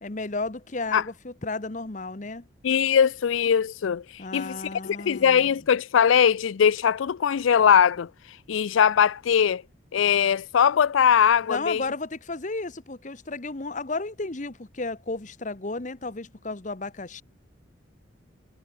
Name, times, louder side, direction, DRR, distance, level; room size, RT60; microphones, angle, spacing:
voice 1, 0.0-2.5 4.2-5.6 11.5-17.2, left 3 dB, 40° left, 1.1 m, -33 dB
voice 2, 2.6-4.6 4.8-8.1 8.5-9.6 9.9-11.8, left 8 dB, 80° left, 0.4 m, -21 dB
head